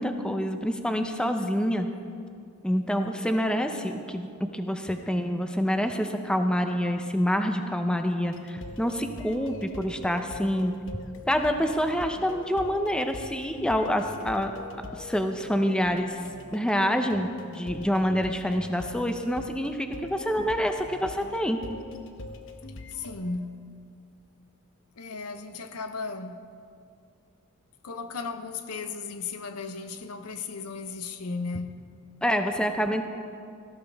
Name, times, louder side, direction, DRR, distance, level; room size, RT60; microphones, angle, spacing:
voice 1, 0.0-1.9 2.6-10.7 11.3-14.6 14.9-16.2 16.5-21.6 32.2-33.1, equal, 5° left, 0.6 m, -27 dB
sound 1, 8.2-23.1, left 2 dB, 60° left, 1.0 m, -43 dB
voice 2, 22.9-23.6 25.0-26.4 27.8-31.8, left 4 dB, 85° left, 0.8 m, -35 dB
17.5 x 14.0 x 3.4 m
head